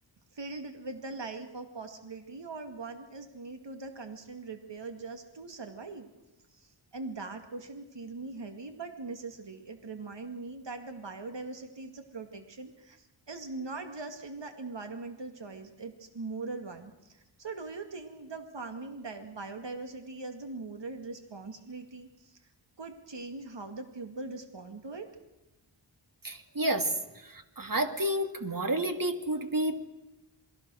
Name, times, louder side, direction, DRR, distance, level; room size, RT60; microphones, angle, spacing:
voice 1, 0.3-6.1 6.5-22.4 22.8-25.1, right 3 dB, 65° right, 6 dB, 2.3 m, -41 dB
voice 2, 26.2-26.9 27.2-29.8, right 1 dB, 45° right, 7 dB, 2.5 m, -30 dB
27.5 x 21.0 x 6.4 m, 1.0 s
wide cardioid pair, 60°, 46 cm